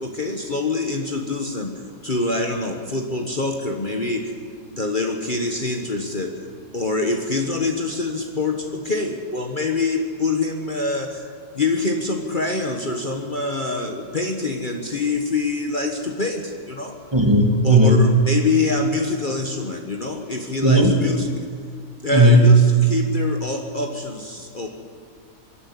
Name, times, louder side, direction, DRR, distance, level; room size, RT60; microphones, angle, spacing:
voice 1, 0.0-1.7 2.0-4.3 4.7-6.4 6.7-17.0 17.6-21.5 22.0-24.7, left 3 dB, 35° left, 2 dB, 1.4 m, -25 dB
voice 2, 17.1-18.1 20.6-21.0 22.1-22.5, right 1 dB, 15° right, 2 dB, 2.1 m, -14 dB
25.0 x 11.0 x 9.8 m, 2.1 s
omnidirectional pair, 1.6 m